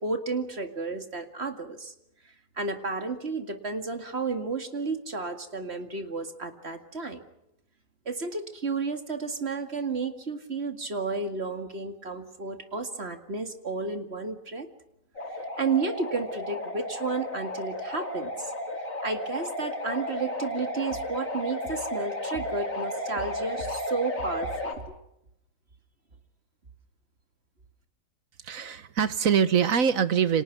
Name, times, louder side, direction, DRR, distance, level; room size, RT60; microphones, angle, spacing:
voice 1, 0.0-1.9 2.6-7.2 8.1-14.7 15.3-18.5 19.0-24.9, right 4 dB, 50° right, 6 dB, 2.4 m, -32 dB
sound 1, 15.2-24.8, left 1 dB, 75° left, 4.0 m, -34 dB
voice 2, 28.4-30.4, right 7 dB, 80° right, 13 dB, 1.6 m, -23 dB
29.5 x 26.5 x 6.0 m, 0.82 s
omnidirectional pair, 1.4 m